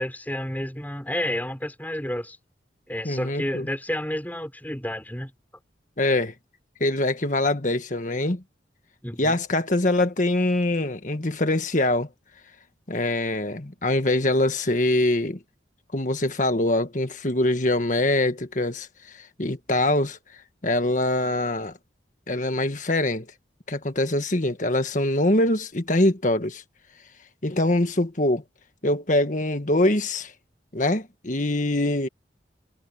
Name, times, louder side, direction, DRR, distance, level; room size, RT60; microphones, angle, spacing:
voice 1, 0.0-2.4 2.9-5.3 9.0-9.3, left 1 dB, 10° left, 5.8 m, -30 dB
voice 2, 3.0-3.7 6.0-6.3 6.8-8.4 9.2-12.1 12.9-15.4 15.9-18.9 19.4-20.2 20.6-21.7 22.3-23.3 23.7-26.6 27.4-28.4 28.8-30.3 30.7-32.1, left 1 dB, 45° left, 1.7 m, -23 dB
head